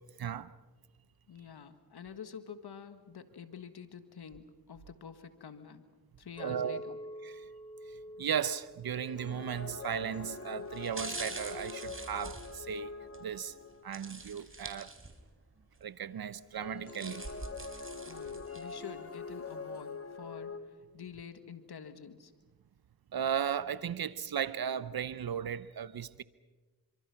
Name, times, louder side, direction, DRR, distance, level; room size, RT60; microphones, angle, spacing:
voice 1, 0.2-0.5 6.4-6.8 7.2-7.4 8.2-12.9 13.2-13.5 13.8-14.9 15.8-17.2 23.1-26.2, right 8 dB, 70° right, 0.8 m, -36 dB
voice 2, 1.3-5.8 6.2-7.0 18.1-22.3, left 7 dB, 80° left, 1.6 m, -48 dB
Chink clink, 6.4-10.7 11.2-11.6, equal, 10° left, 1.2 m, -49 dB
sound 1, 8.9-14.0 16.5-20.6, left 4 dB, 35° left, 2.2 m, -44 dB
sound 2, 9.7-10.0 10.7-13.2 13.9-15.4 15.7-15.8 16.6-18.8 19.3-19.4, right 2 dB, 35° right, 4.4 m, -45 dB
28.5 x 25.0 x 5.9 m
cardioid pair, 45°, 38 cm